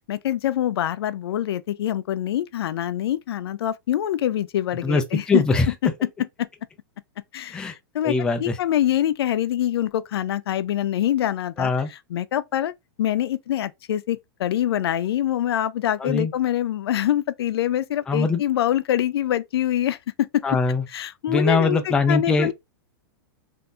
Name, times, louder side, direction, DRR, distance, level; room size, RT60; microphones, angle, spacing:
voice 1, 0.1-5.4 5.8-5.9 6.4-6.5 7.3-11.7 12.1-12.7 13.0-20.4 20.9-22.5, left 11 dB, 90° left, 0.4 m, -25 dB
voice 2, 4.8-5.7 7.5-7.7 8.0-8.6 11.6-11.9 16.0-16.3 18.1-18.4 20.4-20.8 21.3-22.5, left 3 dB, 5° left, 0.3 m, -22 dB
3.4 x 2.7 x 2.4 m
supercardioid pair, 155°, 13 cm